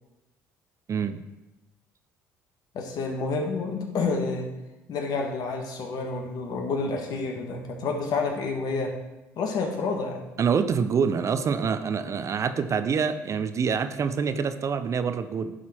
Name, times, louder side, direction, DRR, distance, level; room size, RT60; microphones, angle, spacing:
voice 1, 2.7-4.5 4.9-8.9 9.4-10.2, left 4 dB, 60° left, 3 dB, 1.5 m, -29 dB
voice 2, 10.4-15.5, right 6 dB, 45° right, 10 dB, 0.6 m, -26 dB
11.0 x 4.1 x 4.4 m, 1.0 s
hypercardioid pair, 65°, 7 cm